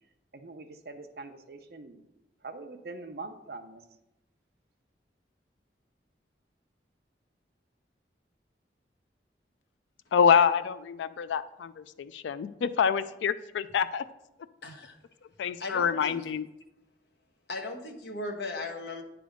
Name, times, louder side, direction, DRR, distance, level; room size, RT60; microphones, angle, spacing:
voice 1, 0.3-2.0 2.4-3.9, right 3 dB, 55° right, 6 dB, 0.7 m, -43 dB
voice 2, 10.1-14.0 15.4-16.4, left 7 dB, 90° left, 14 dB, 0.3 m, -26 dB
voice 3, 14.6-15.0 15.6-16.2 17.5-19.0, left 2 dB, 65° left, 3 dB, 1.1 m, -37 dB
10.0 x 3.4 x 5.1 m, 0.90 s
head